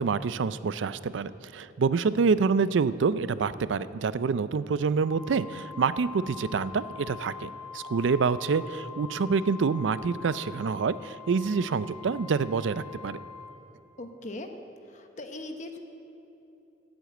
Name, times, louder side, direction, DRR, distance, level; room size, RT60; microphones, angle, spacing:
voice 1, 0.0-13.2, right 5 dB, 80° right, 15 dB, 0.4 m, -27 dB
Wind instrument woodwind instrument, 5.0-13.6, left 6 dB, 20° left, 3.2 m, -44 dB
voice 2, 14.0-14.5 14.9-15.8, left 2 dB, 40° left, 6 dB, 1.0 m, -39 dB
11.5 x 8.0 x 8.8 m, 2.9 s
head